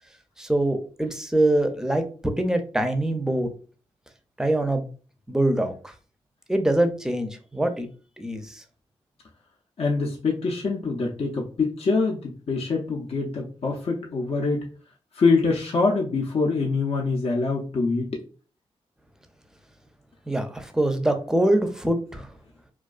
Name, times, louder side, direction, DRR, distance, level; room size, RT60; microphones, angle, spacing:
voice 1, 0.4-3.5 4.4-4.9 5.3-5.9 6.5-7.9 8.2-8.6 20.3-22.3, right 1 dB, 5° right, 7 dB, 0.5 m, -24 dB
voice 2, 9.8-14.7 15.1-18.2, left 4 dB, 55° left, -1 dB, 0.5 m, -24 dB
2.3 x 2.2 x 2.3 m, 0.39 s
supercardioid pair, 45°, 12 cm